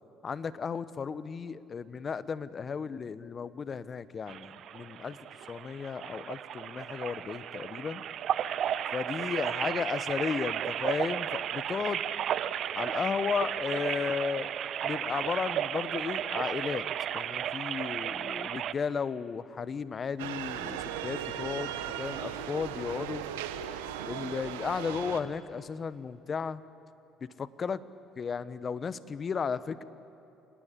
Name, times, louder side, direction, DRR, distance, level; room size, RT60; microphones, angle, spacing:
voice 1, 0.2-5.2 5.5-8.0 8.9-12.0 12.7-14.5 14.8-16.8 17.1-23.2 24.0-26.6 27.2-27.8 28.2-29.8, left 6 dB, 40° left, 15 dB, 1.0 m, -34 dB
sound 1, 4.3-18.7, right 10 dB, 60° right, 0.7 m, -34 dB
sound 2, 20.2-25.2, right 9 dB, 85° right, 1.1 m, -37 dB
27.5 x 20.0 x 8.5 m, 2.8 s
hypercardioid pair, 65°, 0 cm